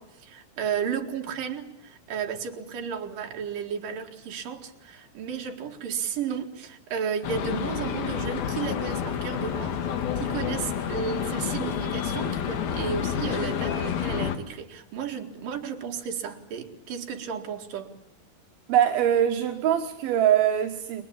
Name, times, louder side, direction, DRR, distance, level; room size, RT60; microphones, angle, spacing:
voice 1, 0.0-9.8 10.2-17.9, right 7 dB, 70° right, 3.8 m, -33 dB
sound 1, 7.2-14.4, left 8 dB, 80° left, 3.6 m, -29 dB
voice 2, 18.7-21.0, right 10 dB, 85° right, 3.1 m, -22 dB
29.0 x 22.5 x 8.7 m
omnidirectional pair, 4.2 m